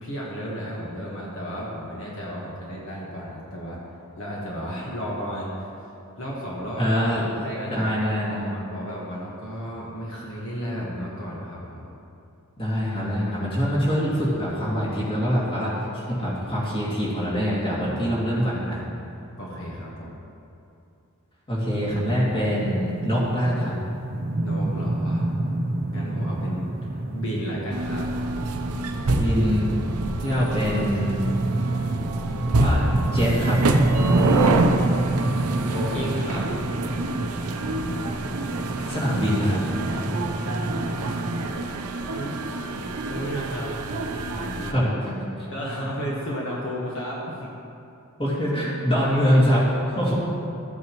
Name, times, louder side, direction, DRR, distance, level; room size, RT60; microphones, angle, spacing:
voice 1, 0.0-3.8 4.2-5.7 6.2-6.9 7.4-11.9 19.4-20.2 24.4-25.2 25.9-28.1 35.7-36.5 38.8-39.0 41.7-43.8 44.2-44.9 45.5-47.5, equal, 60° left, -5 dB, 1.4 m, -33 dB
voice 2, 6.8-7.2 7.7-8.5 12.6-18.8 21.5-23.8 29.2-29.7 30.2-31.2 32.6-32.8 33.1-33.6 38.9-39.6 44.7-45.3 48.2-50.1, equal, 25° left, -7 dB, 2.4 m, -24 dB
sound 1, 21.9-41.5, right 2 dB, 45° right, 0.6 m, -28 dB
sound 2, 27.7-44.7, right 2 dB, 90° right, 0.7 m, -27 dB
13.5 x 8.5 x 3.0 m, 2.7 s
head